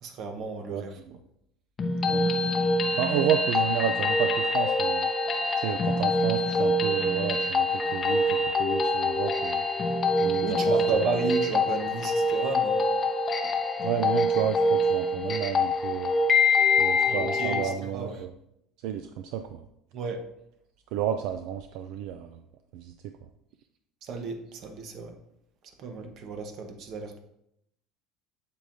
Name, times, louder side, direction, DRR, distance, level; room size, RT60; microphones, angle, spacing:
voice 1, 0.0-0.9 10.4-12.9 17.1-17.6 17.9-18.2 19.9-20.2 24.0-25.1 25.8-27.2, right 4 dB, 50° right, 5 dB, 1.1 m, -32 dB
voice 2, 0.7-1.2 2.1-2.3 2.9-5.1 5.6-9.7 10.2-11.1 13.8-16.1 16.8-18.3 18.8-19.6 20.9-22.4 22.7-23.1, right 10 dB, 70° right, 8 dB, 0.4 m, -31 dB
sound 1, 1.8-17.8, left 2 dB, 25° left, 0.7 m, -25 dB
8.1 x 7.6 x 2.7 m, 0.79 s
cardioid pair, 145°, 0 cm